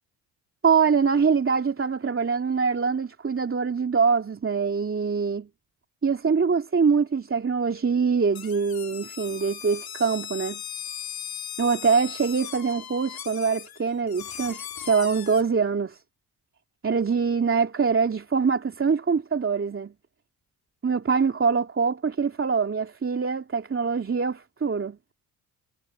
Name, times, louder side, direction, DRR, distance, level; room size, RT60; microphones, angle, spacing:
voice 1, 0.6-5.5 6.0-10.6 11.6-16.0 16.8-19.9 20.8-25.0, right 5 dB, 30° right, 2.8 m, -24 dB
sound 1, 8.3-15.4, left 9 dB, 60° left, 3.6 m, -38 dB
supercardioid pair, 60°, 41 cm